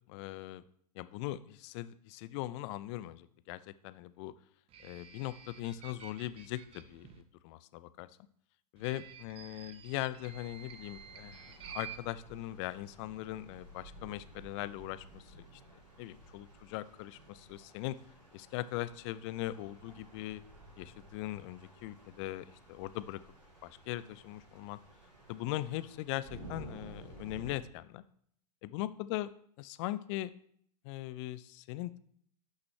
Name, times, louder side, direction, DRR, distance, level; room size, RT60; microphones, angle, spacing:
voice 1, 0.1-0.6 0.9-4.3 4.8-8.1 8.7-15.6 16.0-18.0 18.3-20.4 20.8-23.2 23.6-24.8 25.3-28.0 28.6-29.3 29.6-30.3 30.8-32.0, left 15 dB, 45° left, 15 dB, 0.5 m, -40 dB
sound 1, 4.7-7.2 8.8-12.0, right 8 dB, 30° right, 0.9 m, -51 dB
sound 2, 10.2-27.5, right 2 dB, 90° right, 3.4 m, -54 dB
11.0 x 6.0 x 3.2 m, 0.65 s
hypercardioid pair, 105°, 21 cm